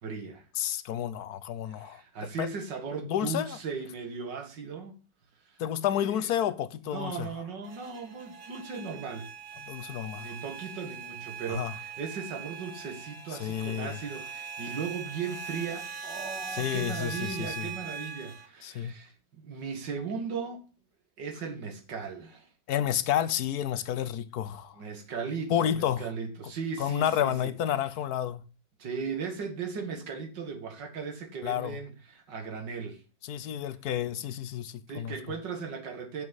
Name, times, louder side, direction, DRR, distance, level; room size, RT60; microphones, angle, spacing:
voice 1, 0.0-0.5 1.7-5.0 5.5-5.6 5.9-6.3 6.9-9.3 10.1-20.6 21.2-22.5 24.7-27.5 28.8-33.0 34.9-36.3, right 5 dB, 75° right, 2.4 m, -37 dB
voice 2, 0.6-2.0 2.4-2.5 3.1-3.6 5.6-7.3 9.7-10.3 11.5-11.7 13.4-14.0 16.5-17.7 18.6-18.9 22.7-24.8 25.5-26.1 26.8-28.4 31.4-31.8 33.2-35.1, left 10 dB, 65° left, 1.1 m, -30 dB
sound 1, 7.6-18.5, right 6 dB, 60° right, 1.6 m, -41 dB
7.5 x 6.2 x 7.2 m
omnidirectional pair, 1.9 m